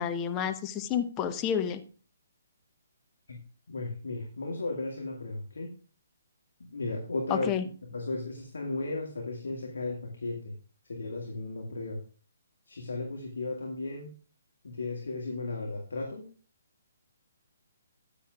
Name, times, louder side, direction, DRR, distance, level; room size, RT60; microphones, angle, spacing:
voice 1, 0.0-1.8 7.3-7.6, left 8 dB, 20° left, 9 dB, 0.8 m, -30 dB
voice 2, 3.7-5.7 6.6-7.5 7.8-10.5 10.8-12.0 12.7-14.1 14.6-16.3, left 2 dB, 60° left, 1 dB, 1.9 m, -35 dB
15.0 x 10.0 x 2.4 m, 0.40 s
figure-of-eight pair, 135°, 0 cm